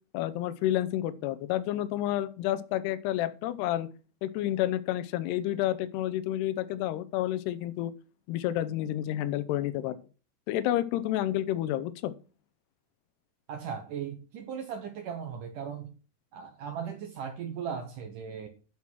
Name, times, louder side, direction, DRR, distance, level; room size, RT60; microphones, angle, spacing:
voice 1, 0.1-3.9 4.2-7.9 8.3-10.0 10.5-12.1, left 13 dB, 80° left, 14 dB, 2.7 m, -30 dB
voice 2, 13.5-15.9 16.3-18.5, right 7 dB, 70° right, 6 dB, 2.1 m, -37 dB
12.0 x 6.0 x 6.2 m, 0.35 s
omnidirectional pair, 5.1 m